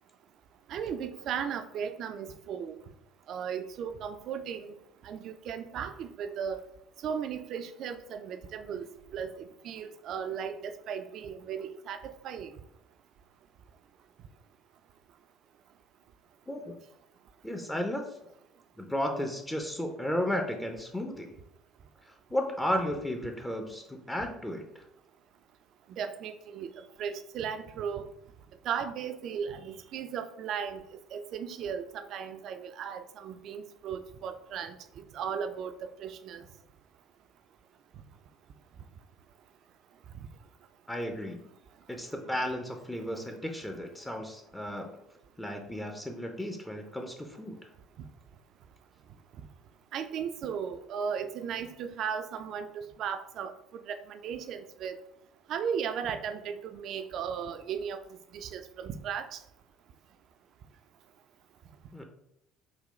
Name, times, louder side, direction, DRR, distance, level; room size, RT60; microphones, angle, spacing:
voice 1, 0.7-2.7 3.3-4.7 5.0-6.6 7.0-12.5 25.9-26.7 27.0-28.1 28.6-30.8 31.1-36.5 49.9-53.5 53.9-55.0 55.5-58.0 58.3-59.4, right 7 dB, 55° right, 9 dB, 0.3 m, -36 dB
voice 2, 17.4-18.1 18.8-21.4 22.1-24.8 40.9-41.5 41.9-45.0 45.4-47.6 61.9-62.0, left 1 dB, 10° left, 3 dB, 0.5 m, -34 dB
3.8 x 2.2 x 3.1 m, 0.81 s
hypercardioid pair, 60°, 0 cm